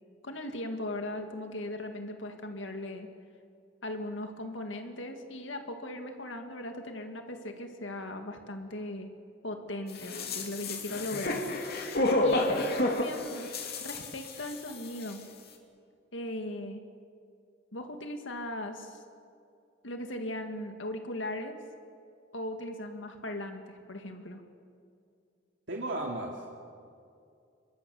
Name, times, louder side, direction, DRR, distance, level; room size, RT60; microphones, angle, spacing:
voice 1, 0.2-3.1 3.8-9.1 9.4-11.4 12.2-13.5 13.8-15.2 16.1-16.8 17.7-19.0 19.8-21.6 22.3-24.4, left 1 dB, 85° left, 5 dB, 2.0 m, -38 dB
sound 1, 10.0-14.8 15.0-15.1, left 2 dB, 55° left, 2.9 m, -30 dB
voice 2, 25.7-26.5, right 2 dB, 75° right, -1 dB, 2.5 m, -35 dB
27.5 x 23.0 x 7.1 m, 2.4 s
head